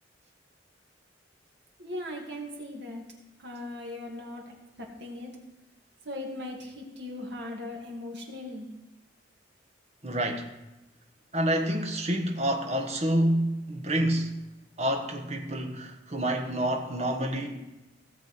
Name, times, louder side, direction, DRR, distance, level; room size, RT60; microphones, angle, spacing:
voice 1, 1.8-3.0 3.4-4.5 5.0-5.3 6.0-8.7, left 1 dB, 60° right, 2.3 m, -38 dB
voice 2, 10.0-10.5 11.3-14.4 14.8-17.6, right 1 dB, 35° right, 1.3 m, -28 dB
17.0 x 7.1 x 4.3 m
head